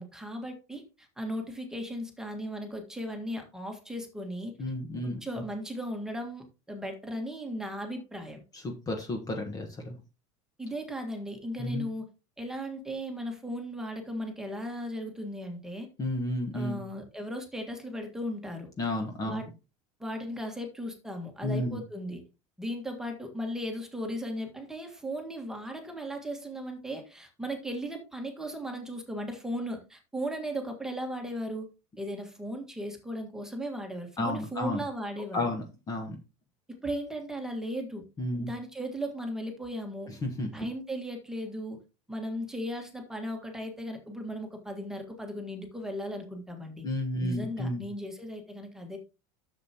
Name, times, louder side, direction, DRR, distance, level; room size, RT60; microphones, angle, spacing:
voice 1, 0.0-4.5 5.2-8.4 10.6-12.0 12.4-15.9 16.5-18.7 19.2-19.5 20.0-22.2 22.6-31.7 32.0-35.5 36.7-38.0 38.4-40.1 40.5-41.8 42.1-46.8 47.2-49.0, equal, 5° right, 3 dB, 1.6 m, -36 dB
voice 2, 4.6-5.2 8.5-10.0 11.6-11.9 16.0-16.8 18.8-19.4 21.4-21.8 34.2-34.8 35.3-36.2 38.2-38.5 40.1-40.5 46.8-47.8, left 1 dB, 25° left, 4 dB, 1.3 m, -32 dB
10.5 x 7.2 x 2.9 m, 0.29 s
supercardioid pair, 145°, 16 cm